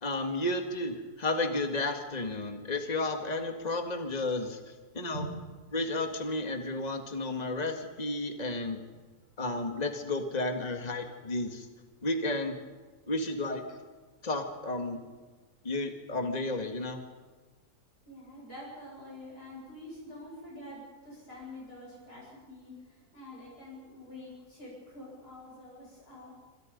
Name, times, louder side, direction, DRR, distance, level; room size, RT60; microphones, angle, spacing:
voice 1, 0.0-4.6 4.9-5.2 5.7-8.8 9.4-11.7 12.0-12.6 13.1-13.8 14.2-15.0 15.6-17.0, left 2 dB, 25° left, 5 dB, 2.0 m, -32 dB
voice 2, 18.1-22.7 23.1-26.3, left 1 dB, 75° left, -4 dB, 8.7 m, -45 dB
27.0 x 26.0 x 5.4 m, 1.4 s
omnidirectional pair, 1.7 m